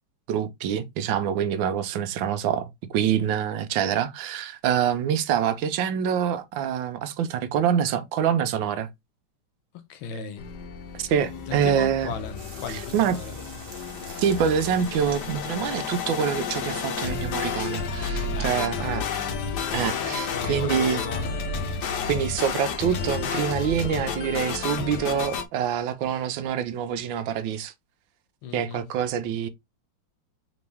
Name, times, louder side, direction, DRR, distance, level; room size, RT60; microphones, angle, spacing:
voice 1, 0.3-8.9 11.0-12.1 12.7-13.2 14.2-19.1 19.4-21.0 21.8-27.7 28.5-29.5, right 8 dB, 80° right, 1.3 m, -26 dB
voice 2, 9.9-10.5 11.5-13.3 18.3-19.2 20.3-21.3 28.4-28.9, left 5 dB, 90° left, 1.7 m, -37 dB
sound 1, 10.4-25.4, left 5 dB, 65° left, 1.3 m, -31 dB
sound 2, 12.4-17.4, right 4 dB, 45° right, 0.9 m, -46 dB
4.2 x 3.0 x 3.3 m
omnidirectional pair, 2.2 m